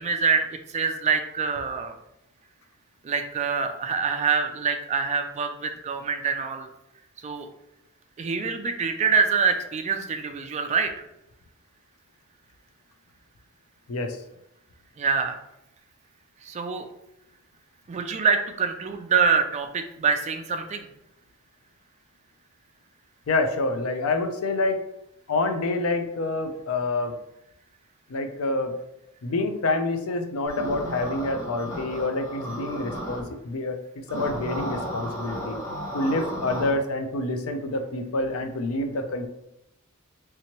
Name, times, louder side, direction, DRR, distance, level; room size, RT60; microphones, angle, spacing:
voice 1, 0.0-1.9 3.0-6.7 7.2-7.5 8.2-10.9 15.0-15.4 16.4-16.9 17.9-20.9, right 5 dB, 35° right, 6 dB, 0.3 m, -25 dB
voice 2, 23.3-24.8 25.3-27.1 28.1-28.7 29.2-33.8 34.1-35.6 35.9-39.3, left 2 dB, 80° left, 7 dB, 0.5 m, -27 dB
sound 1, 30.5-33.2 34.1-36.7, equal, 15° left, 0.9 m, -34 dB
3.3 x 2.9 x 2.9 m, 0.84 s
head